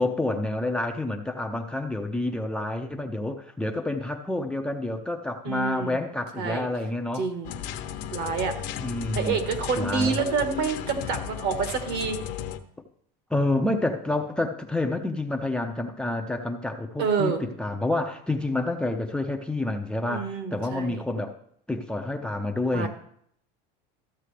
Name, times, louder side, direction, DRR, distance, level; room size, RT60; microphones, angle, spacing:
voice 1, 0.0-7.3 8.8-9.4 9.8-10.2 13.3-21.3 21.7-22.9, left 2 dB, 5° left, 6 dB, 0.5 m, -28 dB
voice 2, 5.4-6.0 6.4-6.7 7.1-7.5 8.1-8.6 9.1-12.2 17.0-17.4 20.1-21.0 22.7-22.9, right 5 dB, 55° right, 6 dB, 1.6 m, -27 dB
sound 1, 7.4-12.6, left 10 dB, 60° left, 0.9 m, -35 dB
14.0 x 7.3 x 3.3 m, 0.67 s
cardioid pair, 140°, 21 cm